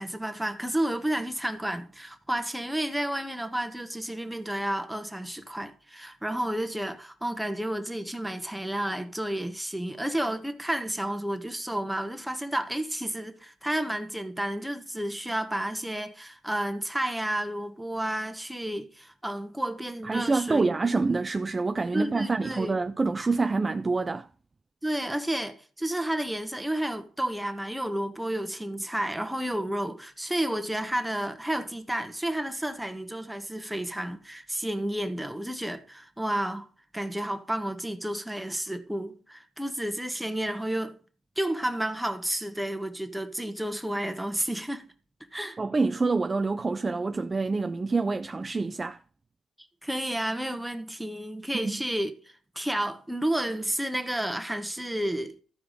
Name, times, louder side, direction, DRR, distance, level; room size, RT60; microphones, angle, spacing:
voice 1, 0.0-20.7 21.9-22.8 24.8-36.7 36.9-41.0 41.4-44.9 45.3-45.6 49.8-55.4, right 1 dB, 5° right, 1.3 m, -31 dB
voice 2, 20.0-24.3 45.6-49.0 51.6-51.7, right 3 dB, 25° right, 0.5 m, -26 dB
14.0 x 4.7 x 5.0 m
cardioid pair, 90°, 0 cm